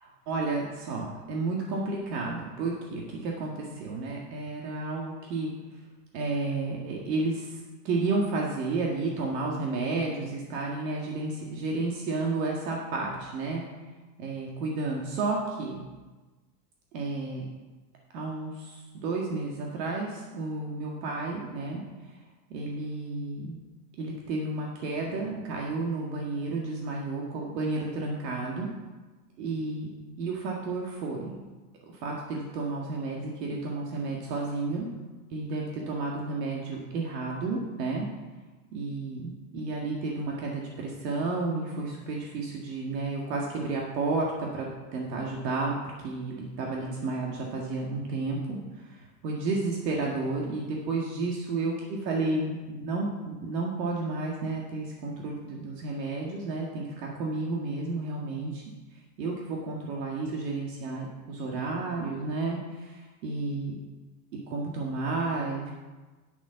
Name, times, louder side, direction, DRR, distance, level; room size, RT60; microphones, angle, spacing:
voice 1, 0.0-5.5 6.1-13.6 14.2-15.8 16.9-17.5 18.1-21.8 22.5-23.6 24.0-28.7 29.4-29.9 30.2-31.4 31.9-34.9 35.3-38.1 38.7-44.7 44.9-45.8 46.0-58.6 59.2-63.8 64.5-65.7, right 3 dB, 75° right, -2 dB, 2.0 m, -32 dB
10.0 x 7.7 x 5.7 m, 1.2 s
supercardioid pair, 125°, 50 cm